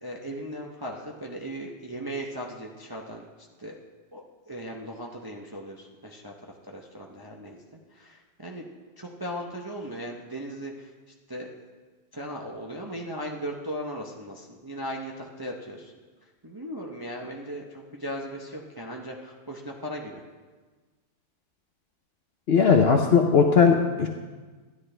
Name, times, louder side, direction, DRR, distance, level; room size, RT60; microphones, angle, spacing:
voice 1, 0.0-3.2 3.6-3.8 4.1-5.8 6.0-6.3 6.7-7.6 8.4-8.7 9.0-10.7 11.3-11.5 12.1-15.8 16.4-17.6 17.9-20.2, equal, 25° right, -1 dB, 0.5 m, -37 dB
voice 2, 22.5-24.1, left 6 dB, 55° left, 3 dB, 0.7 m, -18 dB
13.0 x 10.0 x 3.3 m, 1.3 s
omnidirectional pair, 1.6 m